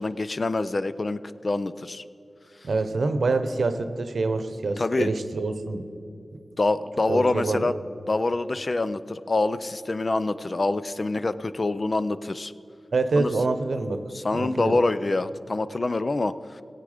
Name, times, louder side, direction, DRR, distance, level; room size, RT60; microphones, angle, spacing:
voice 1, 0.0-2.0 4.8-5.1 6.6-7.8 8.1-12.5 13.2-13.3 14.1-16.6, left 2 dB, 50° left, 13 dB, 0.5 m, -26 dB
voice 2, 2.6-5.8 7.1-7.7 12.9-14.0 14.3-14.7, right 3 dB, 75° right, 9 dB, 0.8 m, -26 dB
16.5 x 8.2 x 5.0 m, 2.9 s
cardioid pair, 45°, 0 cm